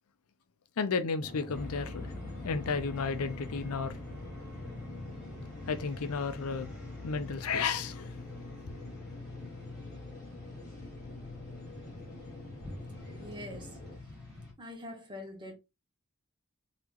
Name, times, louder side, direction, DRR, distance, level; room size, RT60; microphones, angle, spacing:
voice 1, 0.8-2.1 2.4-3.9 5.7-6.7 7.0-8.1, left 5 dB, 80° left, 0.5 m, -32 dB
sound 1, 1.2-14.0, left 1 dB, 35° left, 1.2 m, -48 dB
sound 2, 1.5-14.5, left 2 dB, ahead, 1.9 m, -45 dB
voice 2, 13.1-13.8 14.6-15.5, left 1 dB, 20° right, 1.1 m, -44 dB
3.9 x 2.9 x 3.0 m
head